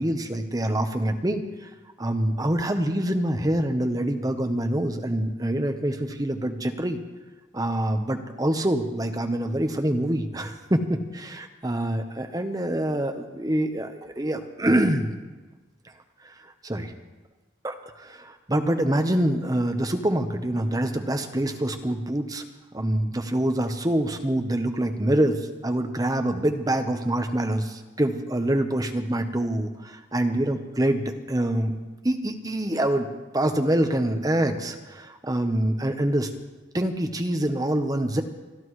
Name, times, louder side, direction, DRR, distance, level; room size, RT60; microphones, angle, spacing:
voice 1, 0.0-1.7 2.0-7.0 7.5-15.1 16.2-16.3 16.6-16.9 17.6-22.4 22.7-31.8 32.0-33.1 33.3-36.3 36.7-38.2, right 1 dB, 20° right, 6 dB, 0.9 m, -25 dB
28.0 x 12.0 x 3.2 m, 1.2 s
head